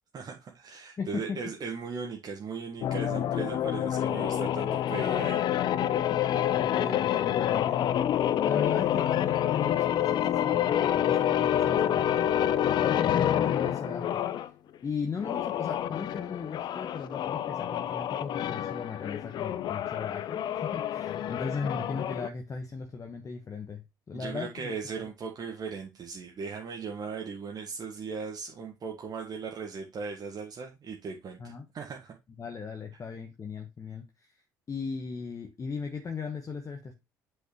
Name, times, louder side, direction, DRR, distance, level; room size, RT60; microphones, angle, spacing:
voice 1, 0.1-5.4 24.1-32.1, right 5 dB, 40° right, 1.4 m, -38 dB
voice 2, 1.0-1.5 6.5-14.3 14.8-24.7 31.4-31.7 32.4-34.4 34.7-36.9, left 5 dB, 35° left, 1.3 m, -37 dB
sound 1, 2.8-14.5 15.1-22.3, left 11 dB, 50° left, 0.5 m, -28 dB
8.1 x 5.7 x 3.0 m
figure-of-eight pair, 55°, 10 cm